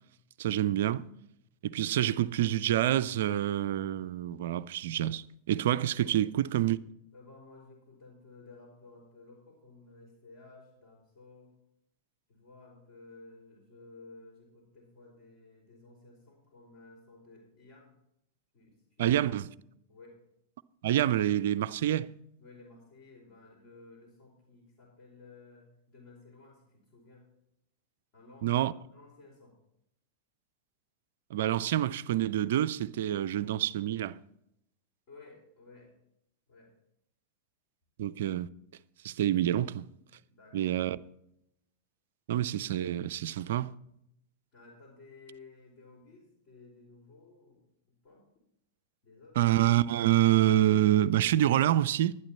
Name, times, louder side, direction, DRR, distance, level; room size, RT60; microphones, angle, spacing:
voice 1, 0.4-1.0 1.6-6.8 19.0-19.5 20.8-22.1 28.4-28.7 31.3-34.2 38.0-38.5 39.0-39.9 40.5-41.0 42.3-43.7 49.4-52.1, right 12 dB, 55° right, 0.4 m, -27 dB
voice 2, 5.8-6.1 7.1-11.5 12.3-17.9 18.5-19.1 19.9-20.2 22.4-27.3 28.1-29.6 35.1-35.9 36.5-36.7 40.3-40.9 44.5-47.6 48.0-48.2 49.0-49.4, left 3 dB, 40° left, 4.0 m, -55 dB
11.5 x 11.0 x 4.2 m
figure-of-eight pair, 90°, 0 cm